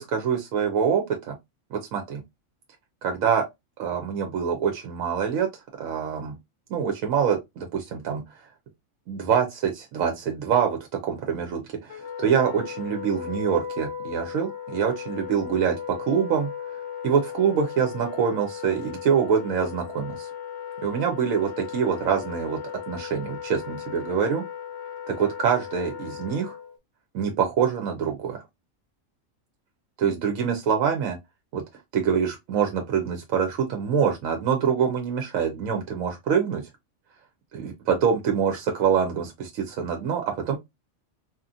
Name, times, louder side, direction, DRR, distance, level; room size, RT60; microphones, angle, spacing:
voice 1, 0.0-1.3 1.7-2.2 3.0-3.4 3.8-5.5 5.8-6.3 6.7-8.2 9.1-10.8 11.0-16.5 17.0-20.3 20.8-22.6 22.9-24.4 25.1-26.5 27.1-28.4 30.0-31.2 31.5-31.6 31.9-36.6 37.5-40.6, right 7 dB, 80° right, 1.0 m, -25 dB
Wind instrument woodwind instrument, 11.9-26.8, left 8 dB, 65° left, 0.8 m, -37 dB
2.9 x 2.4 x 2.5 m
omnidirectional pair, 1.4 m